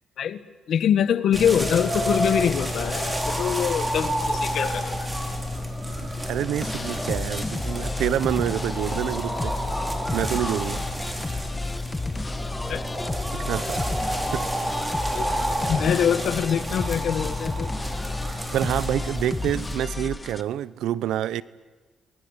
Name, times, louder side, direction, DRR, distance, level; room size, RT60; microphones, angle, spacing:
voice 1, 0.7-5.1 12.7-12.8 15.1-17.7, left 8 dB, 65° left, 12 dB, 1.5 m, -24 dB
sound 1, 1.3-19.8, equal, 15° right, 4.7 m, -29 dB
voice 2, 5.9-9.6 10.1-10.8 13.3-13.9 14.3-14.5 18.3-21.4, right 11 dB, 80° right, 19 dB, 0.8 m, -27 dB
sound 2, 6.6-20.4, left 3 dB, 20° left, 1.2 m, -33 dB
30.0 x 21.0 x 8.3 m, 1.3 s
cardioid pair, 90°, 0 cm